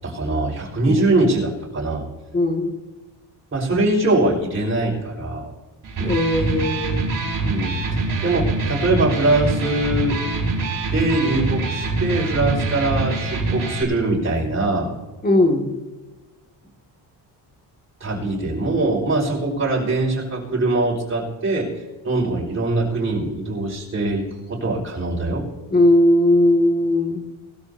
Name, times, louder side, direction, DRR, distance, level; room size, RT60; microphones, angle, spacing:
voice 1, 0.0-2.0 3.5-5.5 7.4-10.2 10.9-14.9 18.0-21.7 22.0-25.5, right 2 dB, 25° right, -4 dB, 5.5 m, -22 dB
voice 2, 2.3-2.7 6.0-7.1 15.2-15.7 25.7-27.3, left 1 dB, 20° left, 3 dB, 2.3 m, -18 dB
Electric guitar, 5.8-13.8, right 3 dB, 45° right, 4.4 m, -24 dB
20.5 x 13.5 x 2.8 m, 1.2 s
cardioid pair, 120°, 46 cm